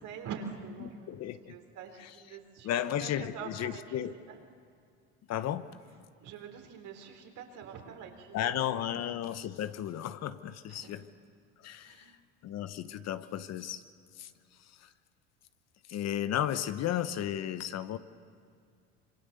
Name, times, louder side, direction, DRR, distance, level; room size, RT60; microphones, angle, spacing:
voice 1, 0.0-1.1 1.5-3.8 4.3-4.4 6.2-8.5 10.7-11.0 11.8-12.1, right 6 dB, 60° right, 4 dB, 3.9 m, -45 dB
voice 2, 0.8-1.6 2.0-2.4 2.6-4.1 5.3-5.7 8.3-11.1 11.6-12.1 12.4-13.8 14.2-14.3 14.7-14.9 15.9-18.0, left 11 dB, 50° left, 12 dB, 1.1 m, -34 dB
27.0 x 23.5 x 6.7 m, 2.3 s
hypercardioid pair, 80°, 34 cm